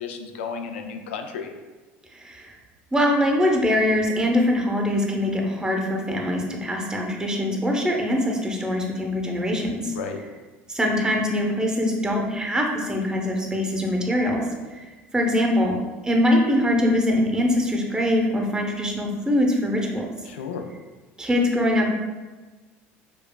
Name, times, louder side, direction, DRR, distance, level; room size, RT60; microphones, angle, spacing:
voice 1, 0.0-1.5 10.0-10.2 20.3-20.6, left 6 dB, 90° left, 5 dB, 0.4 m, -33 dB
voice 2, 2.1-2.5 2.9-9.9 10.7-14.4 14.7-14.9 15.1-15.8 16.0-20.1 21.2-21.9, left 1 dB, 10° right, 0 dB, 0.7 m, -23 dB
4.9 x 2.3 x 2.3 m, 1.3 s
hypercardioid pair, 85°, 6 cm